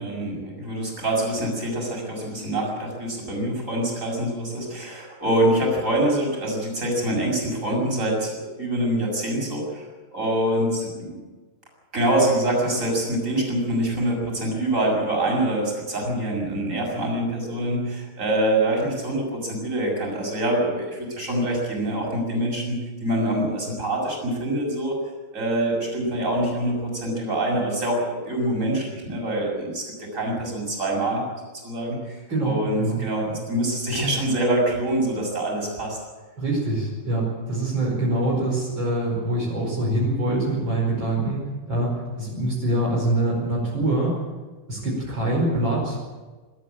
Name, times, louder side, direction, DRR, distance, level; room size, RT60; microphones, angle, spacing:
voice 1, 0.0-11.2 11.9-25.0 25.3-31.2 31.5-36.0, right 1 dB, 35° right, -1 dB, 7.1 m, -25 dB
voice 2, 32.3-33.0 36.4-44.2 44.7-46.1, right 1 dB, 60° right, -3 dB, 5.8 m, -24 dB
24.0 x 13.5 x 8.8 m, 1.3 s
omnidirectional pair, 2.4 m